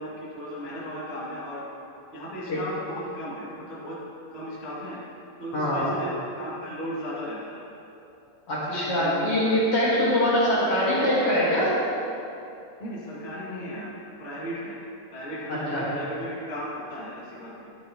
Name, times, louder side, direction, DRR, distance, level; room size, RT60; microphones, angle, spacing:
voice 1, 0.0-1.6 2.1-4.0 4.3-5.0 5.4-7.6 8.6-9.7 12.8-13.9 14.2-14.8 15.1-17.8, equal, 20° left, -8 dB, 2.2 m, -36 dB
voice 2, 5.5-5.8 8.5-11.7 15.7-15.8, equal, 50° left, -8 dB, 2.7 m, -23 dB
14.0 x 10.5 x 3.0 m, 2.7 s
omnidirectional pair, 3.5 m